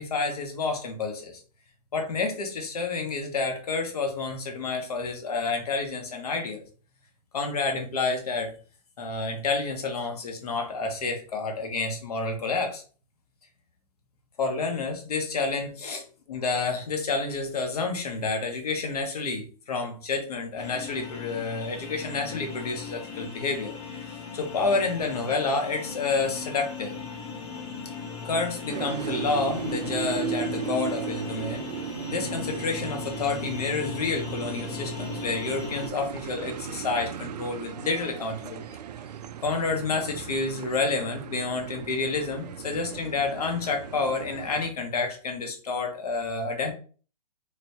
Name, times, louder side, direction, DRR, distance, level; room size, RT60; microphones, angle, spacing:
voice 1, 0.0-1.4 1.9-6.6 7.3-8.5 9.0-12.8 14.4-16.0 16.3-23.7 24.0-24.1 24.3-27.0 28.2-31.6 32.1-38.8 39.4-46.7, left 3 dB, 70° left, 4 dB, 1.1 m, -29 dB
sound 1, 20.6-35.9, left 6 dB, 45° left, 0.7 m, -38 dB
sound 2, 28.7-44.7, right 8 dB, 90° right, 0.4 m, -37 dB
3.4 x 3.0 x 2.8 m, 0.39 s
hypercardioid pair, 160°, 20 cm